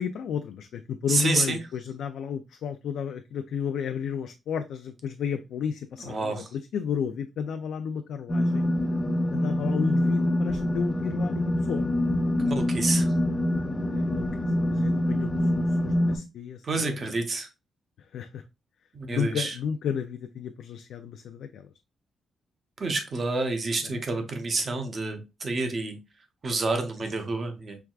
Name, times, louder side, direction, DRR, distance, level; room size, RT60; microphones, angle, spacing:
voice 1, 0.0-8.7 9.3-11.9 13.9-17.2 18.1-18.4 19.1-21.6 23.8-24.0 26.7-27.1, left 7 dB, 70° left, 0.4 m, -33 dB
voice 2, 1.1-1.6 6.0-6.4 12.4-13.1 16.6-17.5 18.9-19.5 22.8-26.0 26.4-27.8, right 3 dB, 30° right, 0.8 m, -28 dB
sound 1, 8.3-16.2, left 1 dB, 15° left, 0.6 m, -25 dB
4.6 x 3.4 x 2.3 m
wide cardioid pair, 170°, 0 cm